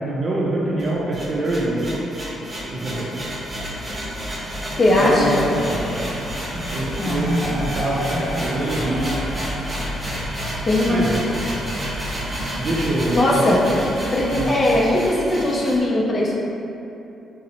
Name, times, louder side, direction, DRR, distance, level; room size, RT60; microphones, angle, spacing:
voice 1, 0.0-2.0 2.7-3.1 5.0-6.1 6.5-9.3 10.9-11.2 12.6-13.6 14.4-14.6, right 1 dB, 40° right, -4 dB, 0.4 m, -25 dB
sound 1, 0.8-15.8, equal, 25° right, 0.8 m, -30 dB
voice 2, 4.8-5.5 7.0-7.2 10.7-11.0 13.1-13.7 14.1-16.4, left 1 dB, 35° left, -3 dB, 0.5 m, -19 dB
sound 2, 5.6-11.5, left 1 dB, 75° left, 0.9 m, -35 dB
2.6 x 2.0 x 2.8 m, 2.8 s
cardioid pair, 90°, 0 cm